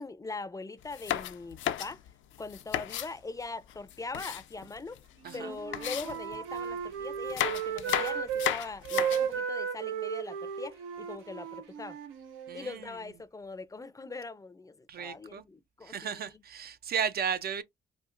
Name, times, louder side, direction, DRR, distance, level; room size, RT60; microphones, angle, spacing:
voice 1, 0.0-2.0 2.4-5.0 5.3-12.0 12.5-16.3, left 3 dB, 15° left, 0.5 m, -41 dB
sound 1, 0.8-3.1 3.7-5.0 5.3-5.4 5.7-6.7 7.2-9.4, left 12 dB, 75° left, 0.5 m, -34 dB
Wind instrument woodwind instrument, 5.2-8.5 8.8-12.6, right 8 dB, 90° right, 1.0 m, -35 dB
voice 2, 12.5-12.9 14.9-15.4 15.8-17.6, right 7 dB, 50° right, 0.5 m, -34 dB
4.2 x 2.5 x 2.4 m
cardioid pair, 90°, 20 cm